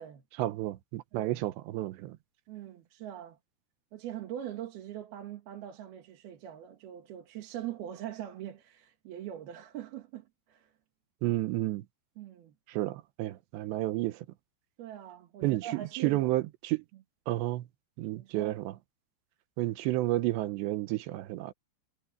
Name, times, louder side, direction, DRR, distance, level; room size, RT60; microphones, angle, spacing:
voice 1, 0.4-2.2 11.2-11.9 12.7-14.3 15.4-16.8 17.3-17.7 18.0-18.8 19.6-21.5, right 17 dB, 80° right, 3.0 m, -31 dB
voice 2, 1.1-1.5 2.5-3.4 3.9-10.7 12.2-12.5 14.8-16.3 18.1-18.5, right 11 dB, 65° right, 3.4 m, -42 dB
omnidirectional pair, 5.1 m